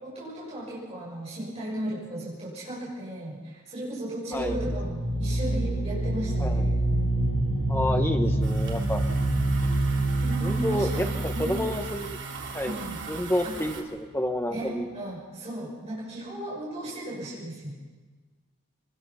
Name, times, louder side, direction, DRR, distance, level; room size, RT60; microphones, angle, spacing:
voice 1, 0.0-7.0 10.2-11.5 12.6-13.0 13.4-13.5 14.5-17.7, right 1 dB, 30° right, -6 dB, 6.6 m, -35 dB
sound 1, 4.3-13.0, right 1 dB, 90° left, 5.7 m, -27 dB
voice 2, 6.4-6.8 7.7-9.0 10.4-12.2 12.5-12.7 13.1-14.9, left 1 dB, 10° left, 4 dB, 1.3 m, -29 dB
sound 2, 8.4-13.8, right 4 dB, 55° right, 3.0 m, -40 dB
24.5 x 20.5 x 5.8 m, 1.3 s
head